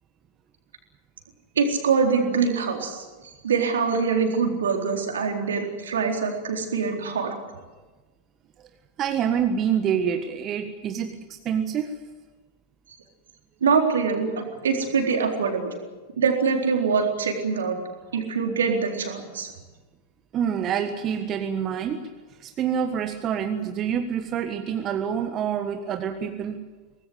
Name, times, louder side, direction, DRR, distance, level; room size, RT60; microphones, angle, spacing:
voice 1, 1.6-3.0 3.4-7.4 13.6-15.7 16.2-17.8 18.1-19.5, right 5 dB, 65° right, 2 dB, 4.0 m, -24 dB
voice 2, 9.0-11.9 20.3-22.1 22.4-26.6, right 8 dB, 30° right, 7 dB, 1.4 m, -27 dB
23.5 x 19.5 x 8.0 m, 1.3 s
figure-of-eight pair, 90°, 0 cm